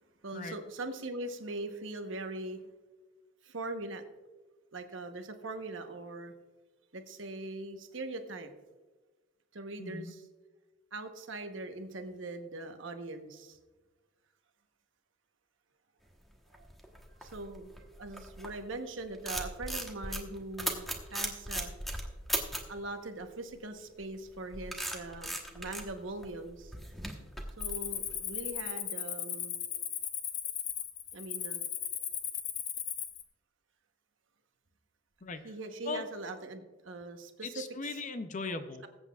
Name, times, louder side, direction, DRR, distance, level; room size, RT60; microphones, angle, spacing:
voice 1, 0.2-2.6 3.4-4.0 4.7-6.3 6.9-8.5 9.5-10.2 10.9-13.6 16.5-16.7 17.2-21.7 22.7-26.7 27.6-29.6 31.1-31.6 35.4-37.5, right 2 dB, 65° right, 6 dB, 1.0 m, -41 dB
voice 2, 9.8-10.1 35.2-35.5 35.8-36.1 37.4-38.9, left 3 dB, 35° left, 9 dB, 0.5 m, -38 dB
sound 1, 16.3-18.7 19.0-22.8 24.0-28.5, right 1 dB, ahead, 1.1 m, -38 dB
Cricket, 27.6-33.2, left 10 dB, 70° left, 1.0 m, -37 dB
20.5 x 8.1 x 2.4 m, 1.2 s
head